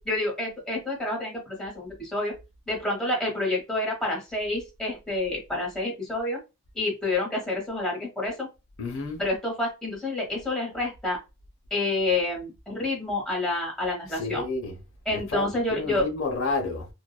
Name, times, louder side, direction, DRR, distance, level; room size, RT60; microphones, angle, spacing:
voice 1, 0.0-2.3 2.7-6.4 6.7-8.5 9.2-11.2 11.7-14.4 15.1-16.1, left 2 dB, 5° left, 1.1 m, -28 dB
voice 2, 8.8-9.2 14.2-14.8 15.1-16.9, left 3 dB, 65° left, 0.7 m, -30 dB
2.5 x 2.2 x 2.3 m
head